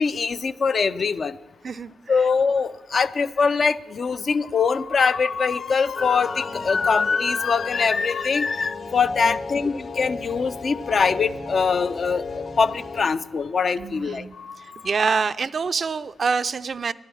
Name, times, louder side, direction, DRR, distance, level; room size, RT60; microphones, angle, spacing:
voice 1, 0.0-1.4 2.1-14.8, left 5 dB, 60° left, 11 dB, 0.5 m, -23 dB
sound 1, 5.9-13.0, left 4 dB, 85° left, 3.5 m, -34 dB
voice 2, 13.8-14.3 14.6-16.9, right 5 dB, 55° right, 13 dB, 0.4 m, -26 dB
11.5 x 10.5 x 7.1 m, 1.1 s
supercardioid pair, 45°, 0 cm